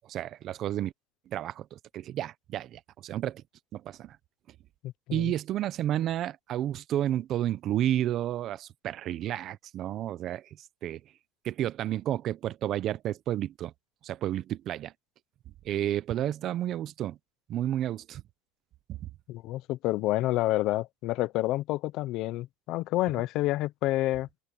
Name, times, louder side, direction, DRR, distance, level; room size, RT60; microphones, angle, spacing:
voice 1, 0.1-0.9 1.3-3.4 3.7-4.2 5.1-10.5 10.8-11.0 11.4-13.7 14.0-14.9 15.6-17.2 17.5-18.2 18.9-19.0, right 12 dB, 45° right, 0.9 m, -31 dB
voice 2, 4.8-5.3 19.3-24.3, left 17 dB, 60° left, 1.0 m, -29 dB
supercardioid pair, 120°, 0 cm